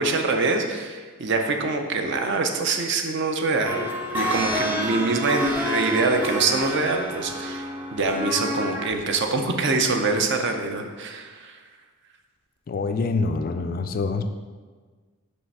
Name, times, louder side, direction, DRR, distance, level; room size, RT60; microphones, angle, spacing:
voice 1, 0.0-7.7 7.9-11.6, right 3 dB, 55° right, 5 dB, 0.6 m, -24 dB
sound 1, 3.6-9.0 9.5-9.6, equal, 10° right, 0.6 m, -29 dB
voice 2, 12.7-14.2, left 3 dB, 40° left, 7 dB, 0.3 m, -25 dB
5.6 x 3.2 x 5.4 m, 1.4 s
head